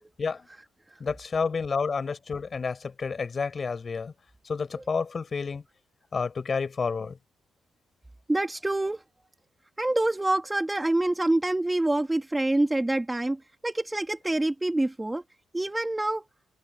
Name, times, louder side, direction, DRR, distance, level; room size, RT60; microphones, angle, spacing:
voice 1, 1.0-4.1 4.4-5.6 6.1-7.2, left 5 dB, 40° left, 4.8 m, -30 dB
voice 2, 8.3-9.0 9.8-15.2 15.5-16.2, right 2 dB, 15° right, 3.0 m, -26 dB
cardioid pair, 90°, 0 cm